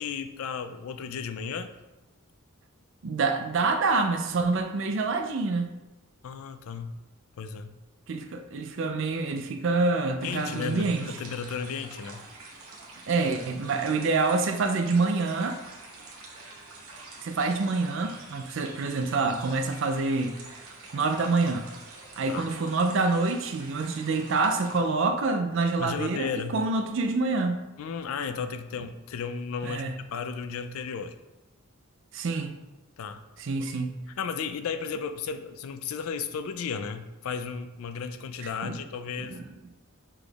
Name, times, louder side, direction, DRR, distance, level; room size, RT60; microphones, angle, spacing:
voice 1, 0.0-1.7 6.2-7.0 7.4-7.8 10.2-12.2 22.3-22.5 25.8-26.6 27.8-31.2 33.0-33.2 33.6-33.9 34.2-39.3, left 6 dB, 75° left, 10 dB, 0.4 m, -34 dB
voice 2, 3.0-5.7 8.1-11.0 13.1-15.6 17.2-21.7 22.2-27.6 29.6-29.9 32.1-32.5 33.4-33.9 38.4-38.8 39.2-39.5, right 3 dB, 60° right, 7 dB, 0.4 m, -27 dB
sound 1, 10.2-24.8, right 3 dB, 80° right, 0.8 m, -46 dB
6.0 x 3.3 x 2.3 m, 1.1 s
head